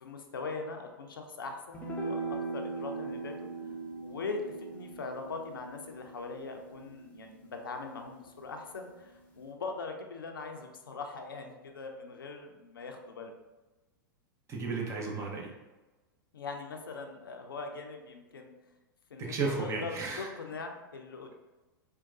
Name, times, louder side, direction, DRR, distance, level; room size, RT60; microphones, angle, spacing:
voice 1, 0.0-3.3 4.0-13.3 16.3-18.5 19.1-21.3, left 4 dB, 75° left, 3 dB, 0.5 m, -41 dB
sound 1, 1.7-8.3, right 3 dB, 10° left, 0.7 m, -40 dB
voice 2, 14.5-15.5 19.2-20.3, right 4 dB, 25° right, -1 dB, 0.8 m, -33 dB
4.5 x 2.2 x 2.6 m, 1.1 s
figure-of-eight pair, 95°, 12 cm